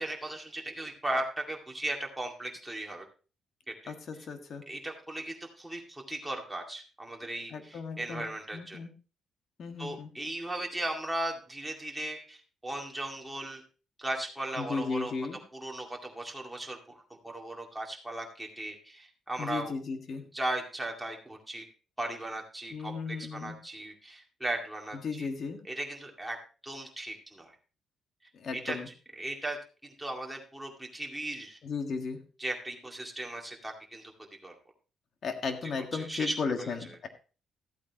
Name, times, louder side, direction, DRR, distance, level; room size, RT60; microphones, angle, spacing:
voice 1, 0.0-3.0 3.7-3.9 4.7-8.8 9.8-13.6 14.0-15.1 15.5-19.7 20.3-21.7 22.0-25.3 25.7-26.4 26.6-27.5 28.5-28.8 29.2-29.6 29.8-31.6 32.4-34.1 34.4-34.6 35.9-36.7, right 1 dB, 5° right, 0 dB, 2.2 m, -37 dB
voice 2, 3.9-4.6 7.5-8.3 8.5-8.9 9.6-10.1 14.6-15.4 19.4-20.2 22.7-23.6 25.0-25.6 28.3-28.9 31.6-32.2 35.2-37.1, left 4 dB, 50° left, 6 dB, 1.7 m, -35 dB
14.0 x 8.5 x 2.9 m, 0.35 s
cardioid pair, 125°, 0 cm